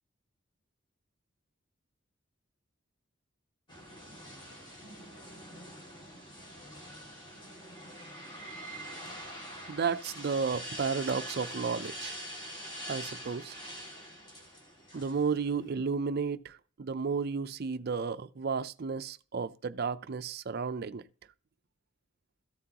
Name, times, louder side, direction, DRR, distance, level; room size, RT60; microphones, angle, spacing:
sound 1, 3.7-15.7, equal, 25° left, 2.1 m, -44 dB
voice 1, 9.7-12.2 12.9-13.6 14.9-21.0, right 5 dB, 50° right, 0.5 m, -33 dB
14.0 x 7.5 x 2.9 m
head